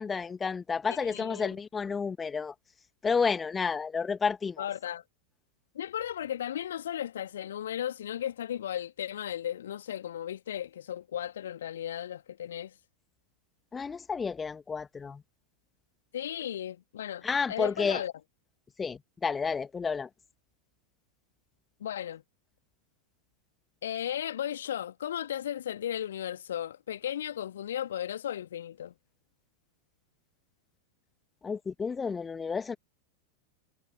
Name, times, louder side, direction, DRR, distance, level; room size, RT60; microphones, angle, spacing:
voice 1, 0.0-2.5 3.0-4.7 13.7-15.2 17.2-18.0 18.8-20.1 31.4-32.8, left 5 dB, 15° left, 1.8 m, -31 dB
voice 2, 0.9-1.5 4.6-5.0 5.7-12.7 16.1-18.1 21.8-22.2 23.8-28.9, left 10 dB, 60° left, 2.0 m, -35 dB
figure-of-eight pair, 90°, 0 cm